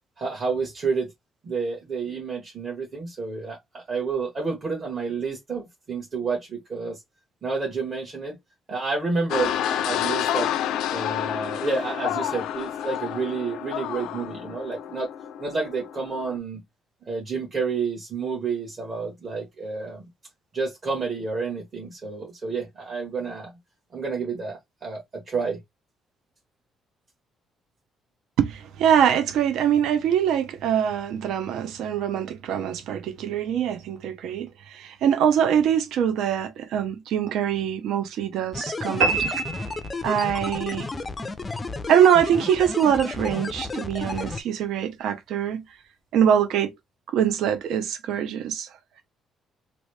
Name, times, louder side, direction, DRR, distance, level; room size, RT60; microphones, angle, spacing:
voice 1, 0.2-1.1 1.4-7.0 7.4-8.4 8.7-10.5 10.9-15.1 15.4-16.6 17.1-20.0 20.5-23.5 23.9-25.6, right 4 dB, 35° right, 1.2 m, -30 dB
sound 1, 9.3-16.4, left 10 dB, 85° left, 0.4 m, -29 dB
voice 2, 28.4-39.3 40.0-40.9 41.9-45.6 46.1-46.8 47.1-48.7, right 9 dB, 70° right, 0.7 m, -23 dB
sound 2, 38.5-44.4, left 3 dB, 15° left, 0.4 m, -32 dB
sound 3, 39.0-40.5, right 4 dB, 90° right, 1.5 m, -26 dB
3.0 x 2.6 x 3.2 m
cardioid pair, 165°, 0 cm